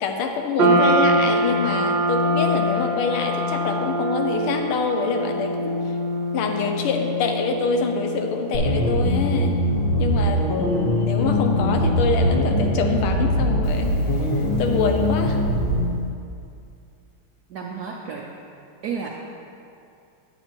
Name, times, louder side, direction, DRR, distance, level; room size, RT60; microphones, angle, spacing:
voice 1, 0.0-5.8 6.3-9.6 10.0-15.4, left 4 dB, 85° left, 3 dB, 1.6 m, -25 dB
sound 1, 0.6-15.0, equal, 60° right, 1.3 m, -26 dB
sound 2, 8.5-15.9, equal, 45° left, 0.7 m, -22 dB
voice 2, 17.5-18.3 18.8-19.1, right 6 dB, 75° right, -1 dB, 0.9 m, -31 dB
9.1 x 8.7 x 2.9 m, 2.5 s
omnidirectional pair, 2.4 m